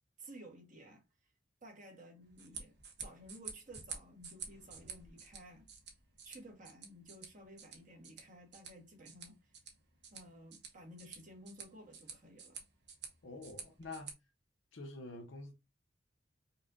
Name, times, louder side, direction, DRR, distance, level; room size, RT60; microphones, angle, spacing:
voice 1, 0.2-1.0 1.6-5.7 6.2-9.5 10.1-12.6, equal, 45° right, 1.4 m, -55 dB
sound 1, 2.2-14.1, right 6 dB, 60° right, 1.1 m, -51 dB
voice 2, 13.2-14.2 14.7-15.5, left 2 dB, 85° left, 1.0 m, -47 dB
5.4 x 2.4 x 2.6 m
head